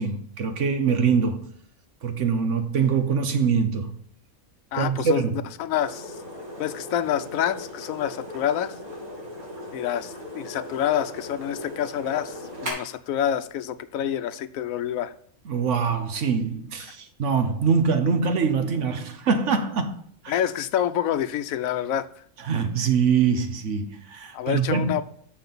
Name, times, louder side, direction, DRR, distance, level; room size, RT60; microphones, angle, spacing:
voice 1, 0.0-1.5 2.0-3.9 4.7-5.3 15.5-20.0 20.2-20.4 22.4-25.0, right 6 dB, 60° right, 1.2 m, -24 dB
voice 2, 4.7-5.2 5.6-6.1 6.6-8.7 9.7-12.3 12.6-15.1 20.3-22.1 24.3-25.0, left 10 dB, 75° left, 1.0 m, -27 dB
sound 1, 5.7-12.7, left 1 dB, 85° right, 3.2 m, -38 dB
6.7 x 5.9 x 5.3 m
omnidirectional pair, 1.5 m